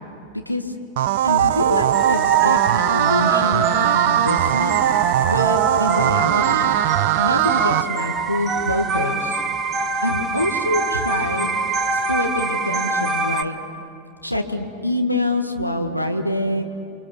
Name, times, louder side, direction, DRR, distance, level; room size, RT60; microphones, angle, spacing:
voice 1, 0.3-0.7 1.2-4.8 5.2-6.7 7.2-9.4 10.0-11.6 11.9-13.5 14.2-16.6, left 1 dB, 90° left, 5 dB, 1.6 m, -25 dB
sound 1, 1.0-7.8, right 12 dB, 50° right, 0.7 m, -20 dB
sound 2, 1.9-13.4, right 4 dB, 20° right, 1.4 m, -24 dB
30.0 x 24.0 x 7.1 m, 2.6 s
figure-of-eight pair, 90°, 0 cm